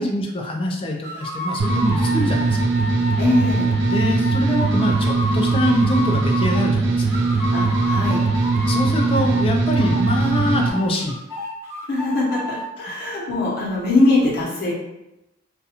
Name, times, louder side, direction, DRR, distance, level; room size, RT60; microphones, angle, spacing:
voice 1, 0.0-2.7 3.9-7.0 8.7-11.2, left 1 dB, 25° left, 1 dB, 0.3 m, -24 dB
sound 1, 1.0-6.7 7.1-9.4 9.7-12.6, left 2 dB, 15° right, 0.6 m, -31 dB
sound 2, 1.6-10.7, right 3 dB, 60° right, 0.4 m, -20 dB
voice 2, 3.2-3.7 7.5-8.2 11.9-14.7, left 2 dB, 55° left, -5 dB, 0.9 m, -21 dB
2.4 x 2.2 x 2.8 m, 0.92 s
head